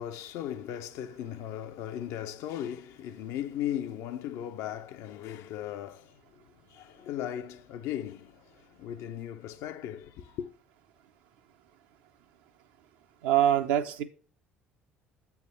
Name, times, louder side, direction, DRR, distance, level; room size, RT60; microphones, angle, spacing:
voice 1, 0.0-10.5, left 11 dB, 60° left, 0.6 m, -37 dB
voice 2, 13.2-14.0, right 11 dB, 65° right, 0.7 m, -24 dB
8.1 x 3.5 x 6.3 m
figure-of-eight pair, 55°, 6 cm